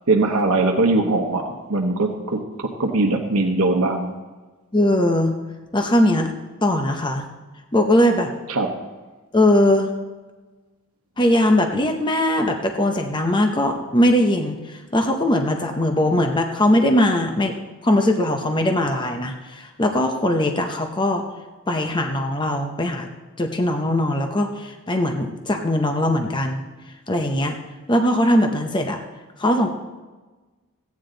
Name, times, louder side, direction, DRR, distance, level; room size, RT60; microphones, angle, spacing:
voice 1, 0.1-4.1 8.5-8.7, right 2 dB, 75° right, 3 dB, 1.0 m, -21 dB
voice 2, 4.7-5.3 5.7-6.3 6.6-7.2 7.7-8.3 9.3-9.9 11.2-17.5 17.8-21.2 21.7-23.1 23.4-26.7 27.1-27.5 27.9-29.0 29.4-29.7, left 1 dB, 20° left, 4 dB, 0.7 m, -20 dB
15.0 x 9.4 x 3.9 m, 1.3 s
head